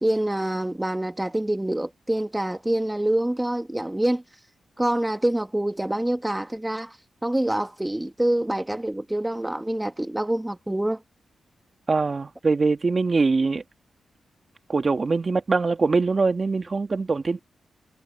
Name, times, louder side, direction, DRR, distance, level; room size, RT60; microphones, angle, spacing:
voice 1, 0.0-4.2 4.8-7.0 7.2-11.0, right 1 dB, 10° right, 1.5 m, -26 dB
voice 2, 11.9-13.6 14.7-17.4, right 4 dB, 40° right, 1.8 m, -23 dB
cardioid pair, 70°, 0 cm